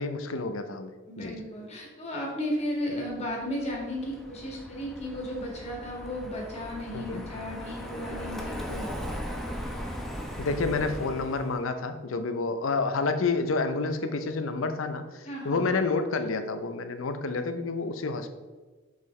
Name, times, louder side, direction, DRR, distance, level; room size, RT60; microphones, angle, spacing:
voice 1, 0.0-1.3 6.9-7.2 10.4-18.3, left 3 dB, 90° left, 8 dB, 0.6 m, -29 dB
voice 2, 1.1-9.0 15.3-15.6, equal, 35° left, -2 dB, 1.7 m, -34 dB
Car passing by, 3.1-11.6, equal, ahead, 0.7 m, -38 dB
6.4 x 5.3 x 3.2 m, 1.3 s
head